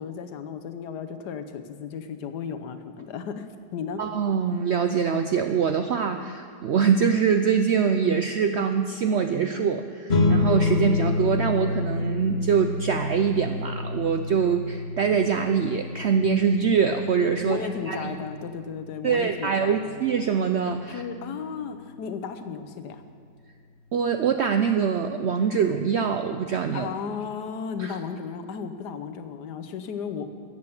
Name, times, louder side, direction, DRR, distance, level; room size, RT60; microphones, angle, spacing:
voice 1, 0.0-4.0 17.4-20.0 20.9-23.0 26.7-30.3, left 6 dB, 90° left, 10 dB, 1.4 m, -34 dB
voice 2, 4.0-18.1 19.0-21.0 23.9-26.9 27.8-28.0, right 6 dB, 75° right, 7 dB, 0.6 m, -24 dB
sound 1, 10.1-20.9, left 3 dB, 45° left, 1.2 m, -29 dB
14.0 x 8.2 x 7.1 m, 2.2 s
omnidirectional pair, 1.7 m